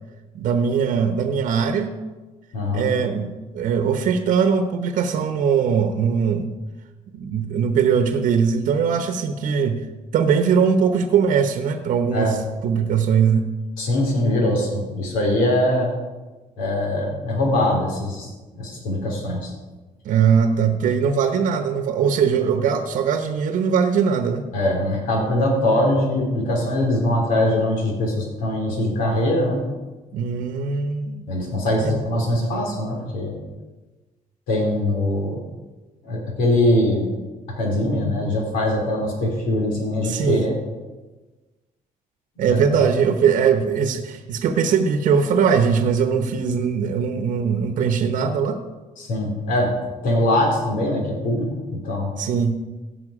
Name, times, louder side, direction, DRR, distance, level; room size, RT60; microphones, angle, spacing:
voice 1, 0.3-1.9 2.7-6.5 7.1-9.8 10.1-13.5 20.0-24.4 30.1-31.2 31.7-32.0 40.0-40.5 42.4-48.6 52.2-52.6, right 6 dB, 75° right, 7 dB, 0.9 m, -20 dB
voice 2, 2.5-2.9 12.1-12.3 13.8-15.9 16.6-19.5 24.5-29.6 31.3-33.3 34.5-35.4 36.0-37.1 37.5-40.6 42.4-42.8 49.0-49.7 50.0-52.1, left 1 dB, 85° left, 0 dB, 3.2 m, -22 dB
16.5 x 5.8 x 4.9 m, 1.2 s
cardioid pair, 95°, 14 cm